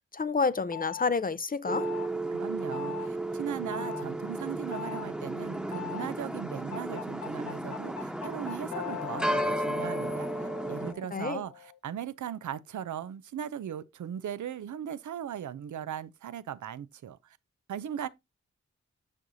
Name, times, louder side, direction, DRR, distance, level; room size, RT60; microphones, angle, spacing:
voice 1, 0.1-1.9 11.1-11.4, left 4 dB, 30° left, 0.5 m, -29 dB
sound 1, 0.7-1.1 1.7-2.1 2.7-3.1 3.7-4.0 4.7-5.1 5.7-6.1 6.7-11.8, left 14 dB, 75° left, 0.6 m, -41 dB
sound 2, 1.7-10.9, right 1 dB, 5° right, 1.0 m, -34 dB
voice 2, 2.3-10.3 10.7-17.4 17.7-18.1, right 9 dB, 80° right, 0.6 m, -38 dB
7.5 x 6.2 x 2.6 m
cardioid pair, 50°, 29 cm